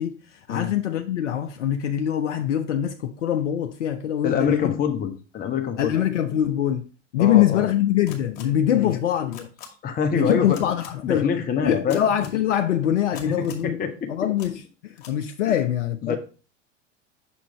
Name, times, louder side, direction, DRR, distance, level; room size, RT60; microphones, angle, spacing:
voice 1, 0.0-4.8 5.8-9.5 10.1-11.3 11.6-13.8 14.1-16.2, left 11 dB, 70° left, 0.5 m, -23 dB
voice 2, 4.2-6.0 7.2-7.7 8.7-9.0 9.8-10.6 11.0-12.0 13.3-14.1 15.4-15.6 16.0-16.2, left 7 dB, 25° left, 0.8 m, -25 dB
sound 1, 8.1-8.4 9.3-9.7 10.5-10.9 11.9-12.3 13.1-13.7 14.4-14.5 15.0-15.1, left 9 dB, 50° left, 1.6 m, -41 dB
6.0 x 3.8 x 4.7 m
figure-of-eight pair, 80°, 38 cm